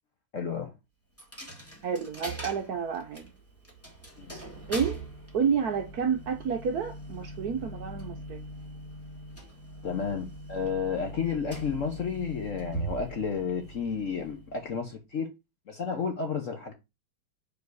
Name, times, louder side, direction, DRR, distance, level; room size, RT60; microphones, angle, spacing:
voice 1, 0.3-0.7 4.2-4.4 9.8-15.3 15.7-16.7, left 6 dB, 55° left, 0.9 m, -32 dB
Coin (dropping), 1.2-14.9, right 2 dB, 5° left, 1.6 m, -41 dB
voice 2, 1.8-3.3 4.7-5.0 5.3-8.4, right 6 dB, 65° right, 1.0 m, -30 dB
4.8 x 4.7 x 4.6 m
omnidirectional pair, 2.2 m